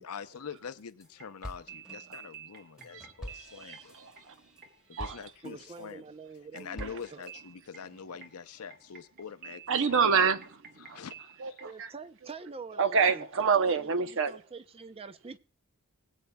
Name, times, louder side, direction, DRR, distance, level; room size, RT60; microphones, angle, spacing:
voice 1, 0.0-3.8 4.9-6.0 6.5-10.1 10.8-11.6, left 6 dB, 85° left, 0.7 m, -44 dB
sound 1, 0.6-1.1 1.4-5.9 6.3-7.3, equal, 5° right, 1.4 m, -47 dB
sound 2, 1.0-11.8, right 8 dB, 40° right, 1.1 m, -51 dB
voice 2, 3.6-4.3 4.9-5.2 6.8-6.9 9.7-11.0 11.4-11.9 12.8-14.4, right 5 dB, 60° right, 0.7 m, -27 dB
voice 3, 5.4-7.3 11.6-15.4, right 4 dB, 25° right, 0.5 m, -46 dB
20.0 x 8.2 x 2.2 m
head